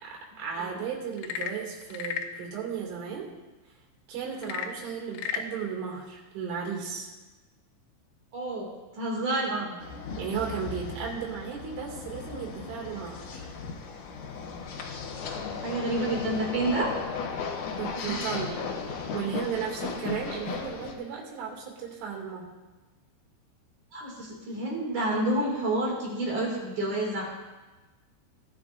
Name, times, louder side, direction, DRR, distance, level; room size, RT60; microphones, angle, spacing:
voice 1, 0.0-3.3 4.1-7.1 9.5-9.8 10.2-13.5 15.8-15.9 17.8-18.7 19.1-22.5, right 7 dB, 85° right, -1 dB, 4.9 m, -35 dB
Frog / Percussion / Wood, 1.1-2.4 4.4-5.5, left 8 dB, 90° left, 3.2 m, -34 dB
voice 2, 8.3-9.5 15.3-16.9 17.9-18.2 23.9-27.2, right 1 dB, 45° right, -3 dB, 3.3 m, -29 dB
sound 1, 9.8-20.9, left 5 dB, 65° left, 2.0 m, -36 dB
19.5 x 11.5 x 2.6 m, 1.2 s
omnidirectional pair, 5.4 m